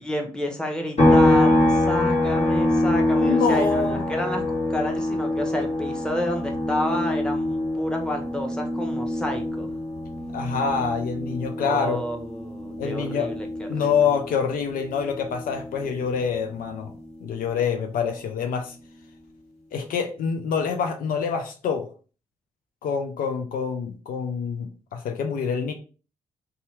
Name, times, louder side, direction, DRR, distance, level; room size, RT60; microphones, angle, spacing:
voice 1, 0.0-9.7 11.6-13.9, left 1 dB, 5° left, 2 dB, 1.0 m, -30 dB
sound 1, 1.0-14.5 14.9-17.1, left 1 dB, 45° left, 1.4 m, -25 dB
voice 2, 3.1-4.0 10.3-12.0 12.8-13.3 13.7-16.9 17.2-18.7 19.7-21.9 22.8-25.7, left 6 dB, 65° left, 5 dB, 0.5 m, -26 dB
2.7 x 2.3 x 3.2 m, 0.37 s
hypercardioid pair, 40°, 16 cm